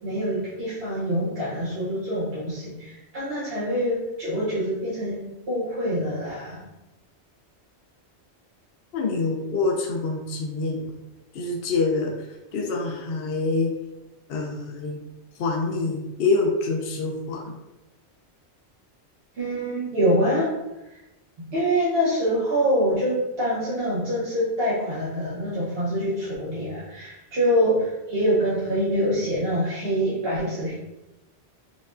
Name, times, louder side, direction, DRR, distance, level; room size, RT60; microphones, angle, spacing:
voice 1, 0.0-5.2 5.5-6.7 19.4-20.5 20.9-21.0 21.4-30.7, equal, 65° right, -8 dB, 1.1 m, -25 dB
voice 2, 8.9-10.9 11.3-13.7 14.3-15.0 15.4-17.6, left 3 dB, 65° left, 0 dB, 0.8 m, -26 dB
5.2 x 2.2 x 2.4 m, 0.99 s
omnidirectional pair, 1.1 m